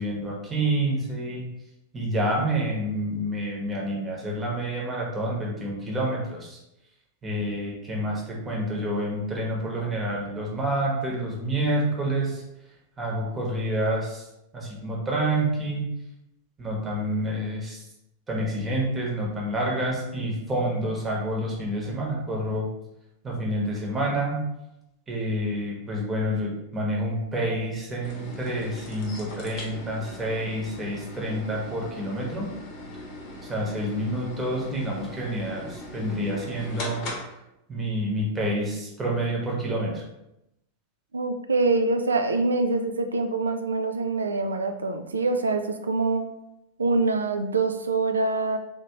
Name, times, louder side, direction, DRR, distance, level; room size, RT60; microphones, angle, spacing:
voice 1, 0.0-1.4 1.9-6.6 7.2-12.4 13.0-14.2 14.5-15.8 16.6-17.8 18.3-22.7 23.2-24.4 25.1-32.5 33.5-37.1 37.7-40.0, right 1 dB, 15° right, -3 dB, 1.0 m, -28 dB
sound 1, 28.0-37.2, left 1 dB, 45° left, 0.8 m, -40 dB
voice 2, 41.1-46.2 46.8-48.6, right 3 dB, 75° right, 7 dB, 0.3 m, -25 dB
3.4 x 2.8 x 2.9 m, 0.87 s
figure-of-eight pair, 90°, 0 cm